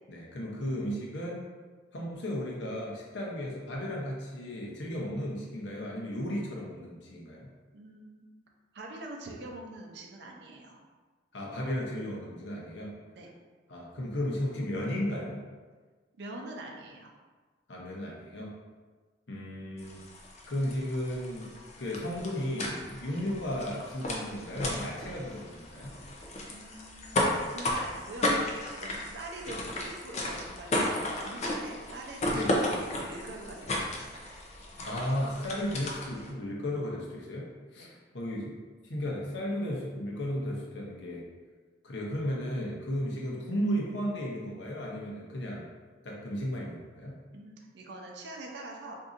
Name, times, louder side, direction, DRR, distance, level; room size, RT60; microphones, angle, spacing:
voice 1, 0.1-1.5 1.9-7.5 11.3-12.9 13.7-15.4 17.7-18.5 19.3-20.0 20.5-21.5 21.8-26.0 32.3-32.5 34.8-38.6 38.8-41.2 41.8-45.6 46.0-47.2, equal, 90° left, -3 dB, 0.7 m, -34 dB
voice 2, 7.7-8.2 8.7-10.8 13.1-13.3 16.2-17.1 26.5-27.2 27.5-28.4 28.8-34.3 37.8-37.9 47.3-49.0, right 2 dB, 70° right, 1 dB, 0.5 m, -44 dB
sound 1, 19.8-36.3, left 1 dB, 40° left, 0.5 m, -34 dB
3.8 x 2.7 x 2.5 m, 1.4 s
head